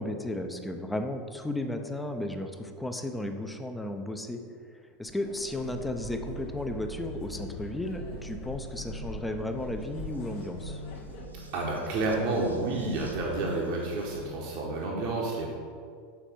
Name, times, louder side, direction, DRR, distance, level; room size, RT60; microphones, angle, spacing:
voice 1, 0.0-4.4 5.0-10.8, left 1 dB, 10° left, 6 dB, 0.5 m, -34 dB
sound 1, 5.1-11.3, left 2 dB, 50° left, 0.8 m, -44 dB
sound 2, 5.6-14.3, equal, 85° right, 0.5 m, -43 dB
voice 2, 11.5-15.5, right 2 dB, 50° right, -2 dB, 0.9 m, -30 dB
5.9 x 4.1 x 5.1 m, 2.3 s
figure-of-eight pair, 80°, 0 cm